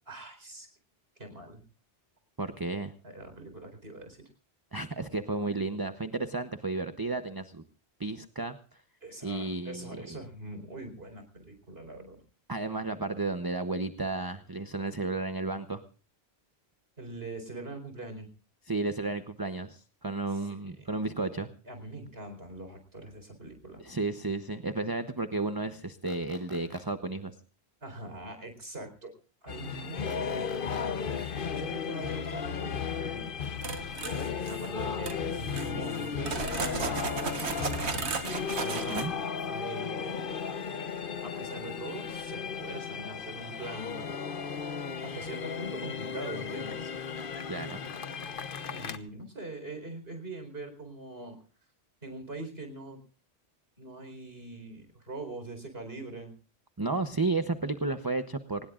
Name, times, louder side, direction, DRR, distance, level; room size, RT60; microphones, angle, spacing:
voice 1, 0.1-0.7 1.2-1.6 3.0-4.2 9.0-12.2 17.0-18.3 20.3-20.9 21.7-23.8 27.8-29.1 29.4-33.3 34.5-38.0 38.6-40.4 41.2-44.0 45.0-46.9 48.7-51.4 52.0-53.0 53.8-56.3, right 2 dB, 65° right, 6 dB, 4.6 m, -43 dB
voice 2, 2.4-2.9 4.7-7.6 8.0-8.8 9.2-10.2 12.5-15.8 18.7-21.5 23.8-27.4 38.7-39.1 47.5-47.8 56.8-58.6, right 3 dB, 20° right, 8 dB, 0.8 m, -33 dB
sound 1, 26.1-26.8 30.1-30.8, equal, 30° left, 5.3 m, -51 dB
sound 2, 29.5-49.0, left 6 dB, 55° left, 1.1 m, -35 dB
sound 3, 33.6-34.7 35.0-35.2 35.5-39.1, right 5 dB, 80° right, 1.5 m, -35 dB
24.5 x 20.0 x 2.5 m, 0.38 s
omnidirectional pair, 1.1 m